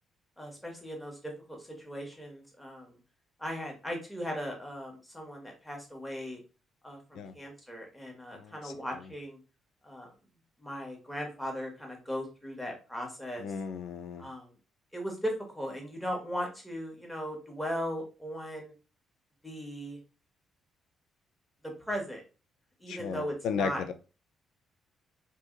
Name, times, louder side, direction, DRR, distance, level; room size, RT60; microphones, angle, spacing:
voice 1, 0.4-3.0 3.4-6.4 6.8-9.4 9.8-10.1 10.6-13.4 14.2-14.5 14.9-18.7 19.4-20.0 21.8-22.2 22.8-23.8, equal, 5° left, 1.3 m, -38 dB
voice 2, 8.3-8.7 13.4-14.3 22.9-23.9, left 6 dB, 80° left, 0.4 m, -35 dB
2.7 x 2.6 x 3.7 m
cardioid pair, 90°, 0 cm